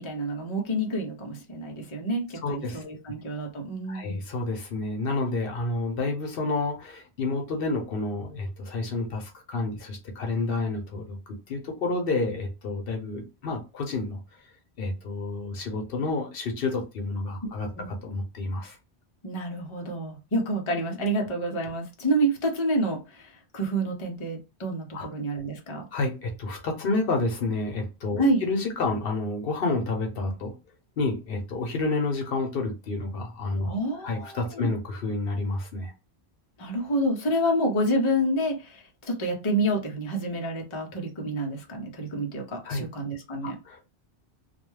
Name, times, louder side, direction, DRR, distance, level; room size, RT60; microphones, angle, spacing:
voice 1, 0.0-4.2 17.4-17.9 19.2-25.9 28.2-28.4 33.6-34.7 36.6-43.6, right 1 dB, 35° left, 1 dB, 0.6 m, -28 dB
voice 2, 2.4-2.8 3.9-14.2 14.8-18.8 24.9-25.1 25.9-30.5 31.0-33.7 34.0-35.9 42.6-42.8 43.4-43.8, left 3 dB, 65° left, 2 dB, 0.8 m, -29 dB
2.3 x 2.2 x 3.1 m, 0.29 s
omnidirectional pair, 1.1 m